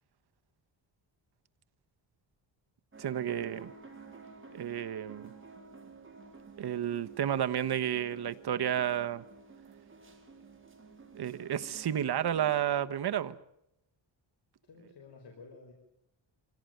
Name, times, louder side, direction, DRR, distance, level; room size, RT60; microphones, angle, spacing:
sound 1, 2.9-12.8, right 4 dB, 25° right, 4.7 m, -52 dB
voice 1, 3.0-3.7 4.5-5.3 6.6-9.2 11.1-13.4, right 10 dB, 60° right, 1.3 m, -31 dB
voice 2, 14.6-15.7, left 4 dB, 60° left, 4.8 m, -52 dB
24.5 x 17.0 x 9.2 m
cardioid pair, 105°, 45 cm